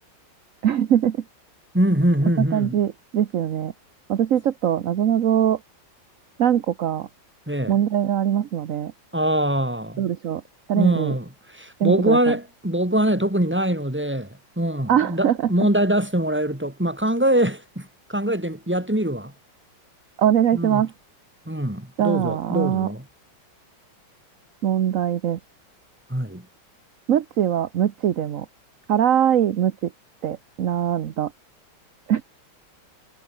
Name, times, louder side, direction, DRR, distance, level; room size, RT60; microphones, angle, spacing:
voice 1, 0.6-1.2 2.5-3.7 4.1-5.6 6.4-7.1 7.7-8.9 10.0-10.4 10.7-11.1 11.8-12.3 14.9-15.4 20.2-20.9 22.0-22.9 24.6-25.4 27.1-28.5 28.9-29.9 30.2-31.3 32.1-32.2, right 10 dB, 55° right, 1.0 m, -22 dB
voice 2, 1.7-2.8 7.5-7.8 9.1-10.1 10.7-19.3 20.5-20.9 21.5-23.1 26.1-26.4, right 1 dB, 5° right, 3.6 m, -23 dB
omnidirectional pair, 2.3 m